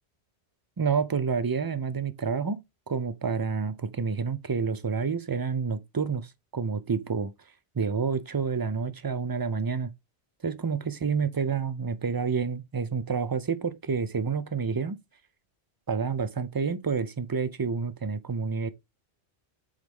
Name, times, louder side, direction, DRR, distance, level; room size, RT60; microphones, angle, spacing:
voice 1, 0.8-7.3 7.8-9.9 10.4-15.0 15.9-18.7, right 5 dB, 35° right, 0.3 m, -29 dB
7.7 x 4.1 x 3.5 m
omnidirectional pair, 1.1 m